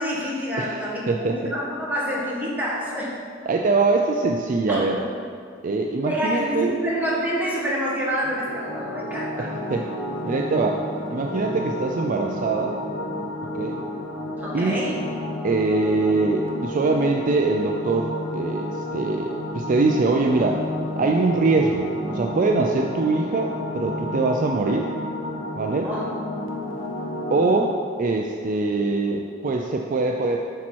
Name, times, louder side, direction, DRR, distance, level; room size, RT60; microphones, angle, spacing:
voice 1, 0.0-3.1 4.7-5.1 6.0-9.5 14.4-15.0 25.8-26.1, equal, 10° right, -6 dB, 1.6 m, -27 dB
voice 2, 0.6-1.4 3.5-5.0 5.6-6.7 9.4-9.9 10.2-10.8 11.1-12.8 13.5-13.8 14.5-15.0 15.4-20.6 21.0-24.9 25.5-25.9 27.3-30.4, right 3 dB, 45° right, 2 dB, 0.4 m, -23 dB
sound 1, 8.2-27.7, left 1 dB, 85° left, 0.9 m, -31 dB
10.5 x 4.3 x 4.4 m, 2.2 s
head